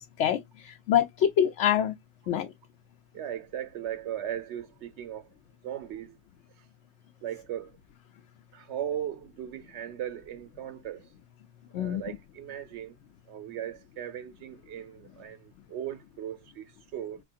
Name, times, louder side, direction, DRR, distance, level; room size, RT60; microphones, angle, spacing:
voice 1, 0.2-1.9 2.3-2.5 11.7-12.0, left 9 dB, 85° left, 0.9 m, -25 dB
voice 2, 3.1-5.3 5.6-6.2 7.2-7.7 8.5-11.1 11.7-13.0 13.3-17.2, right 10 dB, 80° right, 1.0 m, -38 dB
5.0 x 3.7 x 2.5 m
omnidirectional pair, 1.2 m